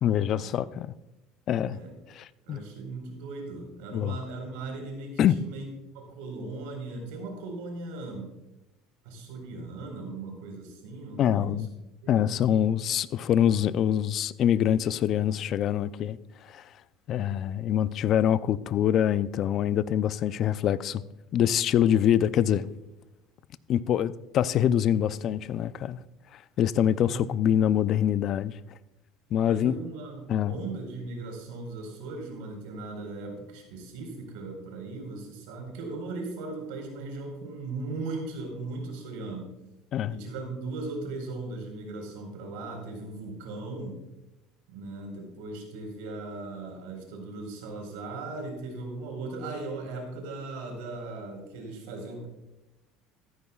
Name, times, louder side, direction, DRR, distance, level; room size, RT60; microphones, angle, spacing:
voice 1, 0.0-0.9 1.5-1.8 2.1-2.6 3.9-4.2 5.2-5.4 11.2-11.7 12.1-16.6 17.1-21.0 21.3-22.7 23.7-26.0 26.3-28.5 29.3-29.8 30.3-30.5 39.9-40.2, left 10 dB, 45° left, 0.4 m, -25 dB
voice 2, 2.4-5.7 5.9-8.3 9.0-11.6 12.0-12.3 27.0-27.3 29.5-39.5 40.1-44.0 44.7-52.3, right 3 dB, 80° right, 4.3 m, -38 dB
15.5 x 13.5 x 2.4 m
cardioid pair, 130°, 0 cm